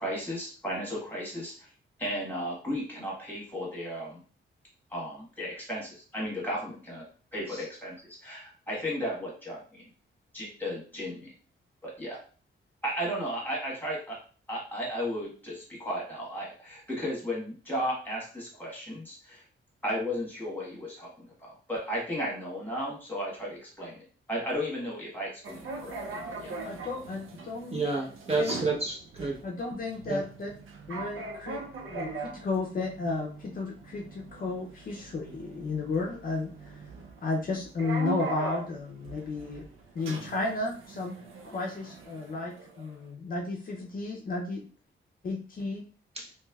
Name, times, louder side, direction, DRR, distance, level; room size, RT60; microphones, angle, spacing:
voice 1, 0.0-1.7 2.0-4.2 4.9-7.0 7.3-9.8 10.3-11.3 11.8-12.2 12.8-14.2 14.5-19.4 19.8-26.5, equal, 10° left, -4 dB, 1.3 m, -35 dB
sound 1, 25.4-43.0, right 3 dB, 80° right, 0.6 m, -41 dB
voice 2, 26.6-27.8 28.4-28.6 29.4-30.5 30.9-31.6 31.9-36.8 37.2-39.6 39.9-41.2 41.4-44.7 45.2-45.8, left 3 dB, 45° left, 0 dB, 0.5 m, -33 dB
voice 3, 27.7-29.4 30.1-30.2 46.2-46.3, right 3 dB, 30° right, -3 dB, 0.7 m, -30 dB
3.2 x 3.0 x 2.3 m, 0.40 s
wide cardioid pair, 150°, 21 cm